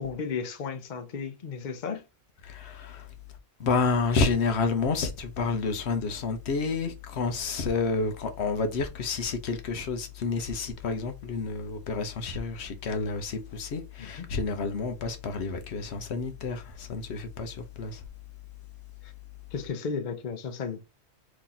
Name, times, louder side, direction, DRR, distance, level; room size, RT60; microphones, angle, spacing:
voice 1, 0.0-2.0 14.0-14.3 19.0-19.1 19.5-20.8, left 5 dB, 50° left, 0.7 m, -34 dB
voice 2, 2.4-3.1 3.6-18.0, left 4 dB, 75° left, 1.0 m, -29 dB
3.0 x 2.8 x 3.8 m
omnidirectional pair, 1.1 m